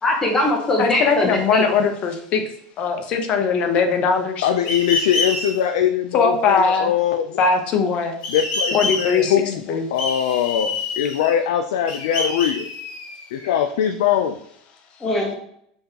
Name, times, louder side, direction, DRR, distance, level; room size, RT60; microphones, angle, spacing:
voice 1, 0.0-1.7 15.0-15.4, left 2 dB, 20° left, -1 dB, 0.9 m, -21 dB
voice 2, 0.8-2.4 2.8-4.5 6.1-6.9 7.4-8.2 8.7-9.3 9.7-9.8, left 5 dB, 45° left, 6 dB, 0.8 m, -20 dB
voice 3, 4.4-7.4 8.3-12.7 13.3-14.4, left 9 dB, 85° left, 7 dB, 0.3 m, -22 dB
sound 1, 4.6-5.5 8.2-9.4 10.0-11.5 11.9-13.5, left 3 dB, 65° left, 1.4 m, -27 dB
5.3 x 3.4 x 2.8 m, 0.68 s
supercardioid pair, 120°, 3 cm